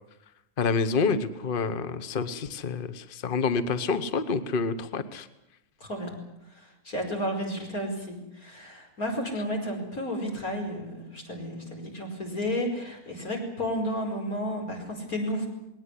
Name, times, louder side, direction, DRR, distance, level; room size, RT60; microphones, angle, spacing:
voice 1, 0.6-5.3, left 4 dB, 40° left, 11 dB, 1.2 m, -28 dB
voice 2, 5.8-6.2 6.5-15.5, equal, 80° left, 2 dB, 5.6 m, -32 dB
20.5 x 18.5 x 9.9 m, 0.88 s
omnidirectional pair, 1.5 m